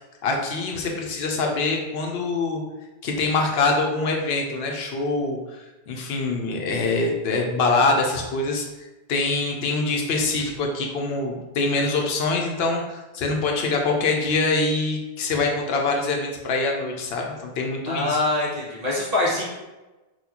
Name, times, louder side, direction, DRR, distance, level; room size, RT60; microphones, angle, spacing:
voice 1, 0.2-2.6 3.0-8.7 9.1-18.2, left 3 dB, 75° left, 1 dB, 0.8 m, -24 dB
voice 2, 17.9-19.4, left 2 dB, 40° right, -6 dB, 0.8 m, -24 dB
4.1 x 2.3 x 2.8 m, 1.1 s
omnidirectional pair, 1.1 m